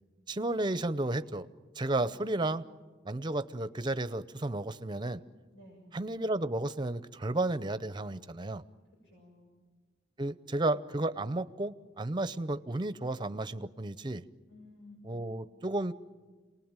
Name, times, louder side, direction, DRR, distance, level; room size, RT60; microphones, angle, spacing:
voice 1, 0.3-1.5 1.8-2.6 3.0-5.2 5.9-8.6 10.2-14.2 15.0-15.9, right 2 dB, 25° right, 14 dB, 0.7 m, -32 dB
voice 2, 5.5-5.9 9.0-9.5 14.5-15.3, left 2 dB, 75° left, -2 dB, 6.7 m, -54 dB
28.0 x 19.5 x 8.9 m, 1.4 s
head